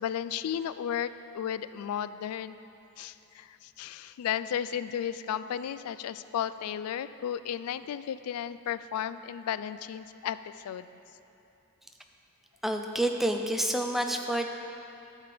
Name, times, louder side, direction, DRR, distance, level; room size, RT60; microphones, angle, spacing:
voice 1, 0.0-2.6 3.0-10.9, left 9 dB, 90° left, 16 dB, 0.3 m, -34 dB
voice 2, 12.6-14.5, right 1 dB, ahead, 3 dB, 0.4 m, -28 dB
11.0 x 7.4 x 3.4 m, 2.8 s
head